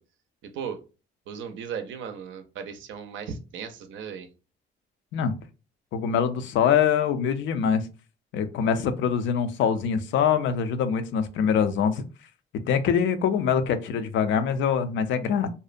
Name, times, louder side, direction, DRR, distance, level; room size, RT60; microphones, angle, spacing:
voice 1, 0.4-0.8 1.3-4.3, right 7 dB, 70° right, 8 dB, 0.5 m, -36 dB
voice 2, 5.9-7.9 8.3-12.0 12.7-15.5, left 7 dB, 75° left, 10 dB, 0.4 m, -24 dB
2.6 x 2.1 x 2.4 m, 0.33 s
cardioid pair, 90°, 20 cm